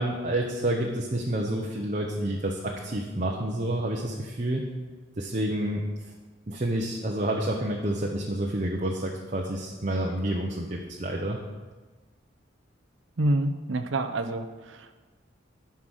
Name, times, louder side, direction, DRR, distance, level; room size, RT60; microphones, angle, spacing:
voice 1, 0.0-4.6 5.2-6.1 6.5-11.4, right 1 dB, 40° right, 0 dB, 0.8 m, -29 dB
voice 2, 13.2-15.0, right 1 dB, 70° right, 8 dB, 0.7 m, -27 dB
11.0 x 5.8 x 6.3 m, 1.3 s
head